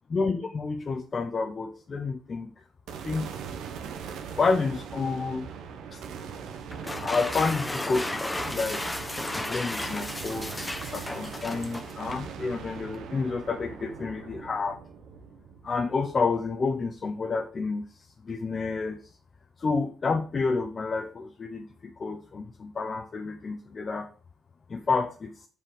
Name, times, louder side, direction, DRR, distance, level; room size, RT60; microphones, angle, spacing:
voice 1, 0.1-2.5 3.0-3.3 4.4-5.5 5.9-6.0 7.0-14.8 15.6-17.8 18.2-19.0 19.6-24.1 24.7-25.3, left 4 dB, 40° left, 5 dB, 0.9 m, -29 dB
sound 1, 2.9-17.2, right 7 dB, 85° right, 1.5 m, -41 dB
sound 2, 6.7-12.3, left 1 dB, 15° left, 1.0 m, -34 dB
7.5 x 5.5 x 5.1 m, 0.39 s
cardioid pair, 90°, 0 cm